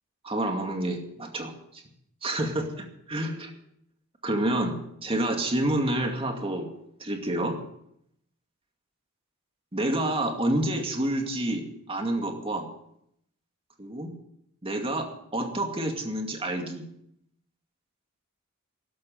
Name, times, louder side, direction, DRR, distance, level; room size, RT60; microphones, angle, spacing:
voice 1, 0.2-1.8 2.2-3.5 4.2-4.7 5.0-6.7 7.0-7.6 9.7-11.6 11.9-12.6 13.8-14.1 14.6-16.8, right 1 dB, 25° right, 3 dB, 2.3 m, -28 dB
12.5 x 11.5 x 7.6 m, 0.74 s
head